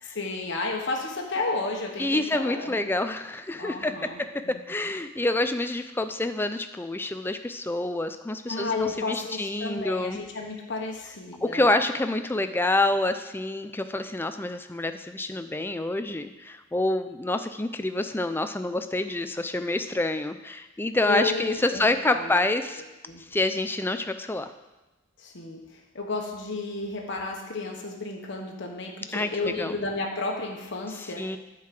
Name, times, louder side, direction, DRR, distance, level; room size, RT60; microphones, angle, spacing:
voice 1, 0.0-2.9 3.6-4.6 8.5-11.7 21.0-22.3 23.1-23.2 25.2-25.6 25.9-31.2, left 3 dB, 60° left, 0 dB, 1.2 m, -32 dB
voice 2, 2.0-10.2 11.4-22.8 23.3-24.5 29.1-29.8 31.0-31.4, left 2 dB, 10° left, 9 dB, 0.4 m, -27 dB
9.2 x 4.7 x 7.6 m, 1.0 s
head